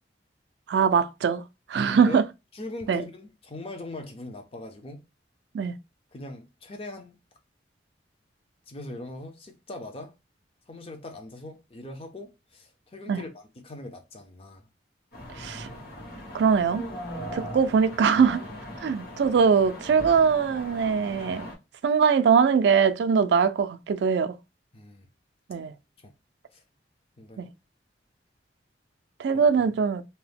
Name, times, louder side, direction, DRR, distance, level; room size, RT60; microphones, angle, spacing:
voice 1, 0.7-1.4 1.7-2.2 2.9-3.0 5.5-5.8 13.1-13.2 15.4-15.7 16.3-16.8 17.3-18.4 18.8-21.5 21.8-24.4 25.5-25.7 27.4-27.5 29.2-30.0, right 6 dB, 75° right, 0.3 m, -22 dB
voice 2, 1.8-2.2 2.5-5.0 6.1-7.2 8.7-10.1 10.7-14.7 24.7-25.1 26.0-26.1 26.5-26.6 27.2-27.4 29.3-29.6, left 2 dB, 35° left, 0.6 m, -41 dB
sound 1, 15.1-21.5, equal, 60° left, 1.4 m, -39 dB
2.7 x 2.0 x 3.3 m
head